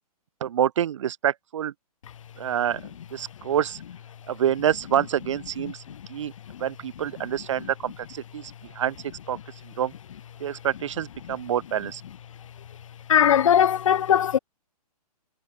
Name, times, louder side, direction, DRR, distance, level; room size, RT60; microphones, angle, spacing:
voice 1, 0.4-1.7 2.4-2.8 3.1-3.8 4.3-5.8 6.1-6.3 6.6-8.9 9.3-9.4 9.8-9.9 10.4-12.0, right 10 dB, 50° right, 3.0 m, -27 dB
voice 2, 13.1-14.4, left 9 dB, 55° left, 5.1 m, -20 dB
hypercardioid pair, 165°, 20 cm